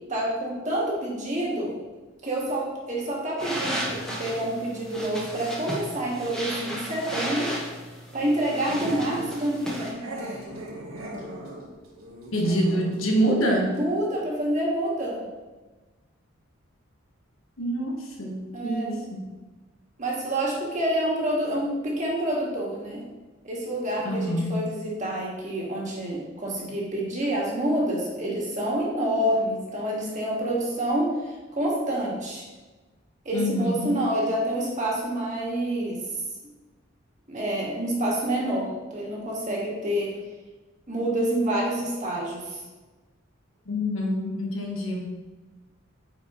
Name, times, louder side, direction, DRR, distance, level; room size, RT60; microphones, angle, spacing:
voice 1, 0.1-1.7 2.2-7.5 8.1-10.4 13.7-15.2 18.5-19.0 20.0-23.0 23.4-32.4 33.2-36.0 37.3-40.1 40.9-42.6, right 1 dB, 35° right, -4 dB, 1.7 m, -28 dB
sound 1, 3.4-9.9, right 1 dB, 5° left, 1.2 m, -34 dB
Growling, 8.7-9.4 10.0-13.0 13.3-13.4 13.7-13.8, right 1 dB, 90° right, 1.2 m, -38 dB
voice 2, 12.3-13.7 17.6-19.2 24.0-24.6 33.3-34.0 43.7-45.2, equal, 85° left, -1 dB, 1.3 m, -26 dB
8.8 x 4.6 x 3.0 m, 1.2 s
head